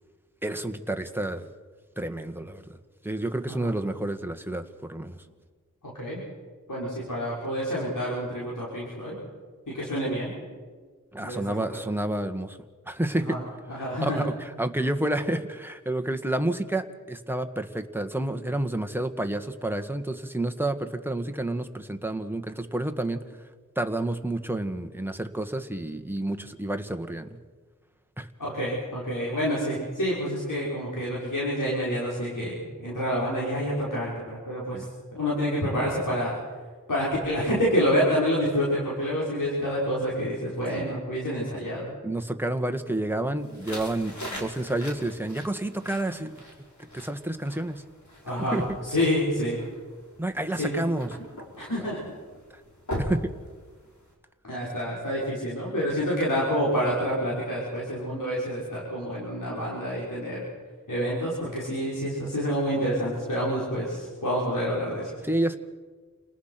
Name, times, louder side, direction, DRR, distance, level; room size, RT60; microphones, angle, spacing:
voice 1, 0.4-1.5 2.0-2.8 3.0-4.6 4.9-5.2 11.1-12.6 12.9-13.4 13.8-23.2 23.8-27.4 28.2-28.3 34.7-34.8 40.8-41.0 42.0-46.4 46.9-47.8 48.3-48.6 50.2-51.1 51.8-51.9 53.0-53.3 65.2-65.6, right 1 dB, 5° right, 6 dB, 1.8 m, -29 dB
voice 2, 6.7-9.1 9.7-10.3 11.2-11.6 13.2-13.4 13.7-14.2 28.4-32.5 32.8-34.8 35.2-36.3 36.9-41.9 48.2-49.6 50.5-50.7 51.6-52.0 54.4-60.4 60.9-65.1, equal, 80° left, -6 dB, 6.4 m, -28 dB
sound 1, 43.4-54.1, equal, 65° left, 5.9 m, -41 dB
29.0 x 19.5 x 6.0 m, 1.5 s
wide cardioid pair, 50°, 32 cm